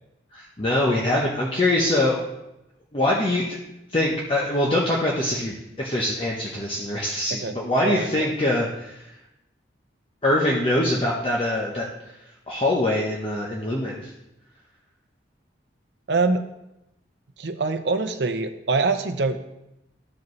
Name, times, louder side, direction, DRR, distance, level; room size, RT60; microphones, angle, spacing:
voice 1, 0.3-2.2 2.9-3.6 3.9-9.1 10.2-11.9 12.5-14.1, left 1 dB, 30° left, -4 dB, 0.9 m, -23 dB
voice 2, 7.8-8.3 16.1-16.4 17.4-19.4, right 3 dB, 65° right, 8 dB, 0.6 m, -24 dB
13.5 x 4.9 x 3.2 m, 0.89 s
head